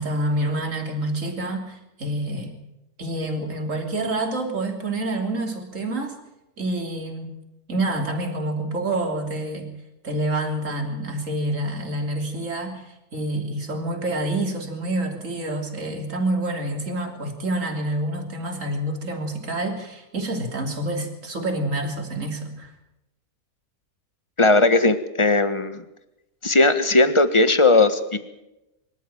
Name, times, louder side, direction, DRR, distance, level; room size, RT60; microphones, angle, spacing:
voice 1, 0.0-2.5 3.0-6.1 6.6-7.3 7.7-9.7 10.0-22.7, right 1 dB, 55° right, 4 dB, 3.5 m, -27 dB
voice 2, 24.4-25.8 26.4-28.2, left 2 dB, 20° left, 11 dB, 1.4 m, -18 dB
24.5 x 13.0 x 9.0 m, 0.93 s
omnidirectional pair, 1.6 m